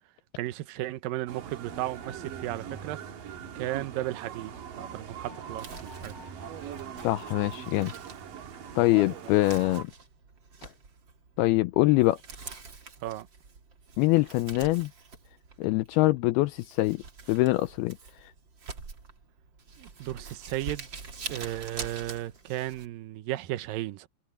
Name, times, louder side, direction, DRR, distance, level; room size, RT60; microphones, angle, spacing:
voice 1, 0.4-3.0 3.6-4.5 4.8-6.1 13.0-13.3 19.8-20.9 21.3-24.1, right 15 dB, 80° right, 2.0 m, -34 dB
sound 1, 1.3-9.8, right 8 dB, 55° right, 3.5 m, -41 dB
Crumpling crinkling, 5.5-22.9, right 4 dB, 35° right, 2.2 m, -46 dB
voice 2, 7.0-7.9 8.8-9.9 11.4-12.2 14.0-14.9 15.6-17.0 17.3-18.0 18.2-18.3, left 19 dB, 85° left, 2.3 m, -24 dB
omnidirectional pair, 5.1 m